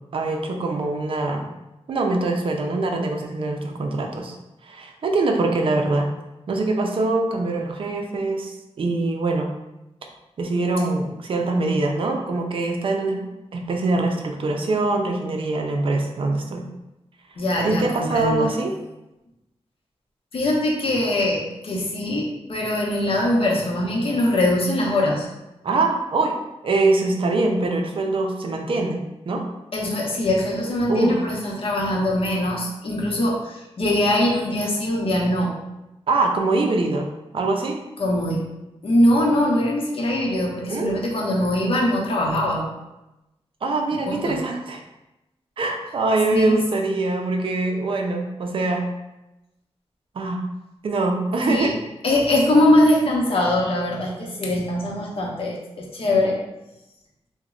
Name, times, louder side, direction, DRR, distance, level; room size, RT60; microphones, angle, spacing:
voice 1, 0.1-1.5 1.9-4.4 4.6-6.1 6.5-9.5 10.4-16.7 17.6-18.7 25.6-26.4 26.6-29.0 29.3-29.5 30.9-31.2 36.1-37.8 40.7-41.0 43.6-44.8 45.6-48.9 50.1-50.4 50.8-51.8, right 2 dB, 55° right, 2 dB, 0.4 m, -23 dB
voice 2, 17.4-18.6 20.3-25.3 29.7-35.5 38.0-38.4 38.8-42.6 44.0-44.4 46.3-46.6 51.5-51.7 52.0-56.4, left 1 dB, 60° left, -2 dB, 0.7 m, -22 dB
3.0 x 2.1 x 3.7 m, 0.97 s
wide cardioid pair, 150°, 11 cm